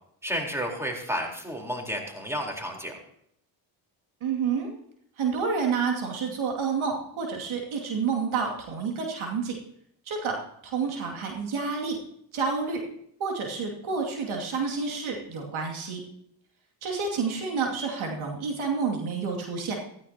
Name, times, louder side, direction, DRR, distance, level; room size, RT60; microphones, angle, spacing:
voice 1, 0.2-3.0, equal, 5° right, 1 dB, 4.0 m, -31 dB
voice 2, 4.2-4.7 5.2-9.6 10.1-12.0 12.3-12.8 13.2-16.0 16.8-19.8, right 5 dB, 70° right, 1 dB, 2.6 m, -29 dB
15.0 x 14.0 x 2.9 m, 0.71 s
supercardioid pair, 55°, 50 cm